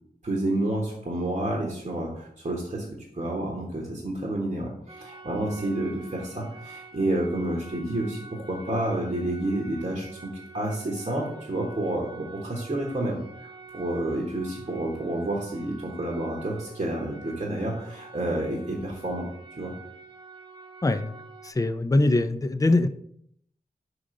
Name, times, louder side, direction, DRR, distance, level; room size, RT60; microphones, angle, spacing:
voice 1, 0.2-19.3 19.6-19.7, right 1 dB, 45° right, -2 dB, 1.2 m, -30 dB
sound 1, 4.9-21.5, right 4 dB, 30° right, 1.0 m, -47 dB
voice 2, 20.8-21.1 21.4-22.9, left 2 dB, 20° left, 9 dB, 0.4 m, -22 dB
5.2 x 4.9 x 3.8 m, 0.70 s
wide cardioid pair, 50°, 17 cm